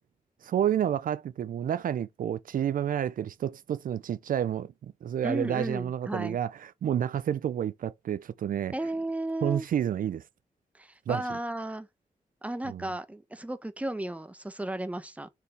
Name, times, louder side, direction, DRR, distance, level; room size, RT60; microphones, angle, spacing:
voice 1, 0.4-8.7 9.4-10.2 11.1-11.2 12.7-12.8, right 9 dB, 75° right, 0.4 m, -30 dB
voice 2, 5.2-6.4 8.7-9.7 10.7-11.9 12.4-15.3, right 1 dB, 10° right, 0.9 m, -34 dB
6.8 x 4.6 x 3.3 m
cardioid pair, 95°, 14 cm